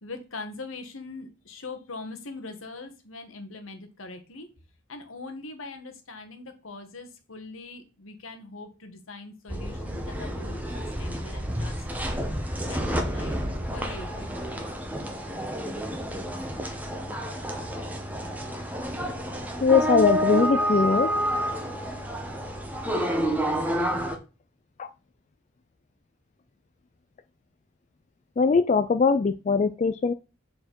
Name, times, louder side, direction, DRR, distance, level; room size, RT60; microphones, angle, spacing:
voice 1, 0.0-4.5 4.9-11.8 12.7-13.4 13.7-14.4, left 3 dB, 80° left, 6 dB, 1.4 m, -41 dB
sound 1, 9.5-24.2, equal, 10° right, 0.9 m, -29 dB
voice 2, 19.6-21.1 24.8-24.9 28.4-30.1, left 5 dB, 35° left, 9 dB, 0.3 m, -21 dB
7.4 x 4.2 x 4.5 m, 0.32 s
head